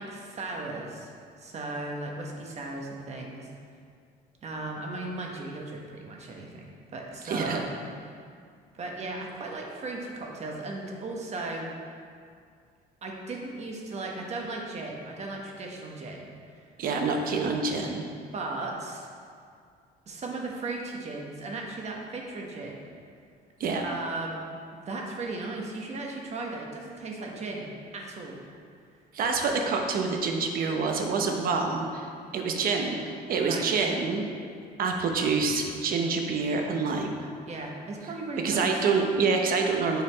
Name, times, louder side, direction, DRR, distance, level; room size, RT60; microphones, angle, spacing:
voice 1, 0.0-3.5 4.4-7.7 8.1-8.2 8.7-11.7 13.0-16.3 18.3-19.1 20.1-22.8 23.8-24.4 24.8-27.7 27.9-28.4 33.4-33.7 37.5-38.7, right 2 dB, 40° right, 0 dB, 1.2 m, -36 dB
voice 2, 7.2-7.6 16.8-18.1 23.6-23.8 29.1-34.2 34.8-37.3 38.4-40.0, right 4 dB, 60° right, 3 dB, 1.0 m, -27 dB
7.0 x 4.3 x 5.6 m, 2.2 s
cardioid pair, 110°, 17 cm